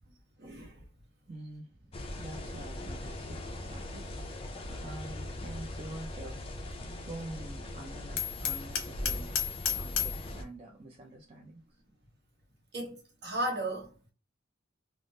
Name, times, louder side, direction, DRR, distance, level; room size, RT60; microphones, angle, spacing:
voice 1, 0.4-0.8 6.8-7.1 12.7-13.9, right 1 dB, 55° right, 1.0 m, -36 dB
voice 2, 1.3-9.5 9.7-11.8, right 2 dB, 30° right, 0.4 m, -47 dB
sound 1, 1.9-10.4, left 1 dB, 30° left, 0.4 m, -40 dB
Hammer, 8.2-10.2, left 8 dB, 70° left, 0.6 m, -32 dB
3.4 x 2.0 x 2.6 m
head